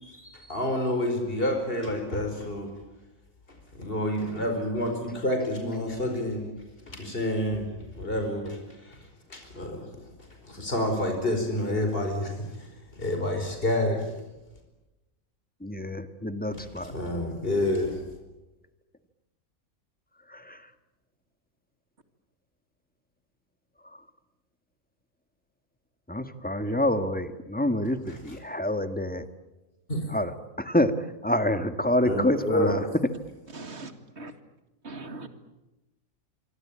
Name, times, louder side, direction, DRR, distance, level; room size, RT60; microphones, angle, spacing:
voice 1, 0.0-2.7 3.7-6.6 6.9-7.7 7.9-9.9 10.4-14.2 16.5-18.0 28.1-28.4 29.9-30.0 32.0-32.8, left 1 dB, 40° left, 5.1 m, -29 dB
voice 2, 15.6-16.9 20.3-20.6 26.1-29.2 30.1-30.3 30.6-30.9 31.2-32.8, left 1 dB, 5° left, 1.6 m, -27 dB
voice 3, 33.5-34.3 34.8-35.3, right 3 dB, 50° right, 2.6 m, -40 dB
25.0 x 25.0 x 8.7 m
omnidirectional pair, 1.4 m